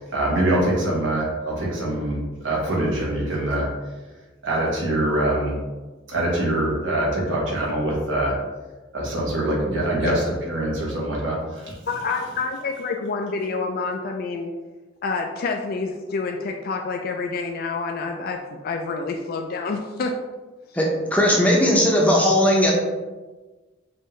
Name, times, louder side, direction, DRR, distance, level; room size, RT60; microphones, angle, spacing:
voice 1, 0.0-3.7 4.4-5.6 6.1-8.3 8.9-11.7, right 1 dB, 70° right, -4 dB, 1.3 m, -24 dB
voice 2, 11.8-14.5 15.0-20.1 20.7-20.8, left 4 dB, 50° left, 3 dB, 0.3 m, -28 dB
voice 3, 20.7-22.7, equal, 5° left, -2 dB, 0.6 m, -18 dB
5.4 x 2.6 x 3.2 m, 1.2 s
head